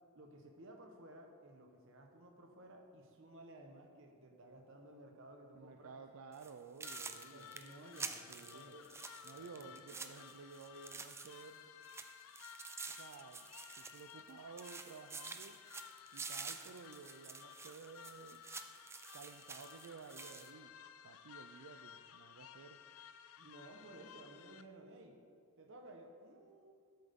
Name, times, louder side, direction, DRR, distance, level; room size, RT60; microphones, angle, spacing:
voice 1, 0.2-6.0 7.1-8.9 9.3-10.1 23.4-25.2 25.6-26.8, right 1 dB, 60° right, 3 dB, 1.1 m, -56 dB
voice 2, 5.6-7.5 8.3-8.7 9.2-11.6 12.9-13.5 13.8-15.6 16.1-18.4 19.1-20.7 21.0-22.8, right 5 dB, 80° right, 6 dB, 0.4 m, -54 dB
sound 1, 6.3-6.5 6.8-11.6 11.8-14.3 14.6-20.5, right 4 dB, 10° right, 0.3 m, -49 dB
sound 2, 6.8-24.6, left 9 dB, 75° left, 0.4 m, -56 dB
11.0 x 7.8 x 3.6 m, 2.2 s
head